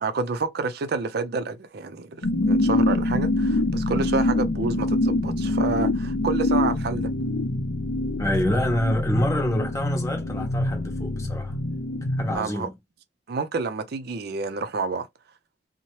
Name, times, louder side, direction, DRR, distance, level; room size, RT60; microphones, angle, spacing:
voice 1, 0.0-7.1 12.3-12.7 13.3-15.1, right 4 dB, 60° right, 0.5 m, -29 dB
sound 1, 2.2-12.4, left 1 dB, 80° left, 0.5 m, -25 dB
voice 2, 8.2-11.6 12.2-12.7, left 1 dB, 15° left, 0.8 m, -27 dB
2.8 x 2.1 x 3.0 m
head